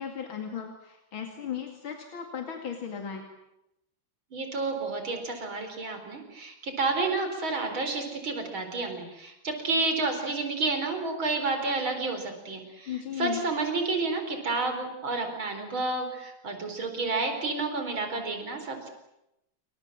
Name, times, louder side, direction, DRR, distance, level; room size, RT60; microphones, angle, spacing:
voice 1, 0.0-3.2 12.9-13.4, left 8 dB, 85° left, 4 dB, 3.2 m, -36 dB
voice 2, 4.3-18.9, right 3 dB, 85° right, 6 dB, 5.3 m, -30 dB
28.5 x 25.0 x 7.6 m, 0.87 s
omnidirectional pair, 2.2 m